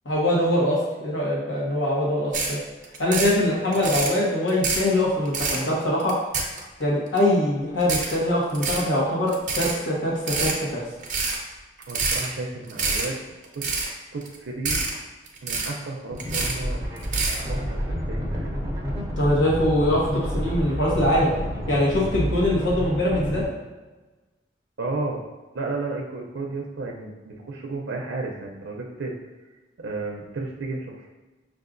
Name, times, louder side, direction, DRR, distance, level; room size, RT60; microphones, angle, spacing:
voice 1, 0.0-2.6 3.0-6.2 6.8-10.8 19.2-21.3 21.7-23.5, left 1 dB, 75° left, -5 dB, 1.1 m, -23 dB
sound 1, 2.3-2.5 2.8-3.3 3.7-4.1 4.5-4.9 5.3-5.6 6.0-6.8 7.2-7.3 7.8-8.2 8.5-8.8 9.3-9.7 10.2-10.6 11.0-11.4 11.8-12.3 12.6-13.1 13.4-13.9 14.2-14.4 14.6-14.9 15.3-15.8 16.2-16.6 17.0-17.4, right 4 dB, 45° right, 0.7 m, -26 dB
voice 2, 11.9-13.2 13.5-14.8 15.4-16.8 17.4-18.6 24.8-25.2 25.5-29.1 29.8-31.1, right 3 dB, 90° right, 0 dB, 0.5 m, -33 dB
sound 2, 16.1-23.5, equal, 15° right, 0.8 m, -29 dB
6.2 x 2.4 x 2.5 m, 1.2 s
head